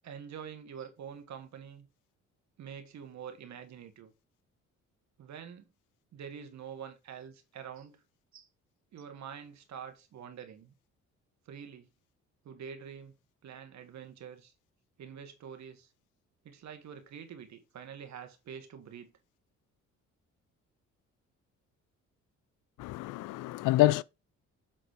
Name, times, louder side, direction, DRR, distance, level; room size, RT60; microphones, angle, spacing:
voice 1, 0.0-1.9 2.6-4.1 5.2-5.7 6.1-8.0 8.3-8.5 8.9-10.7 11.5-11.9 12.4-13.1 13.4-14.5 15.0-15.9 16.4-19.1, right 7 dB, 65° right, 1.8 m, -46 dB
voice 2, 22.8-24.0, left 15 dB, 90° left, 0.5 m, -26 dB
7.4 x 4.0 x 4.9 m
cardioid pair, 90°, 30 cm